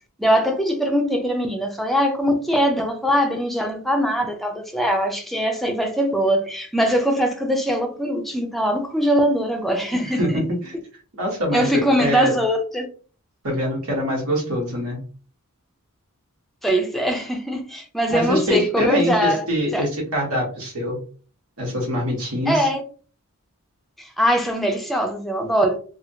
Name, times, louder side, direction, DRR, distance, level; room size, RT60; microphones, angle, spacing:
voice 1, 0.2-10.4 11.5-12.8 16.6-19.9 22.5-22.8 24.0-25.8, equal, ahead, 0.5 m, -22 dB
voice 2, 10.2-10.8 11.1-12.3 13.4-15.0 18.1-21.0 21.6-22.7, equal, 85° right, 1.2 m, -24 dB
2.8 x 2.4 x 2.7 m
head